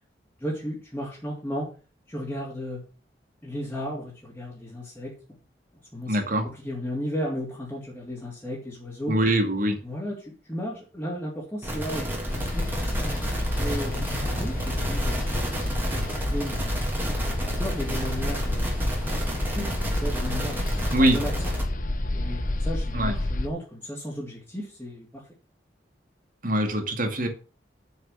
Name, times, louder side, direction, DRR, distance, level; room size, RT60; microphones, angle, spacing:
voice 1, 0.4-1.7 2.1-2.8 3.4-5.1 5.9-6.2 6.4-9.2 9.8-15.3 15.8-16.8 17.4-18.7 19.5-19.7 20.0-21.5 22.1-25.2, equal, 10° left, -6 dB, 3.0 m, -34 dB
voice 2, 6.1-6.5 9.1-9.8 20.9-21.2 22.9-23.2 26.4-27.3, right 1 dB, 50° right, 5 dB, 2.3 m, -23 dB
sound 1, 11.6-21.6, equal, 10° right, 3.2 m, -32 dB
sound 2, 12.3-23.5, left 1 dB, 50° left, 1.0 m, -29 dB
7.2 x 6.8 x 7.5 m, 0.35 s
head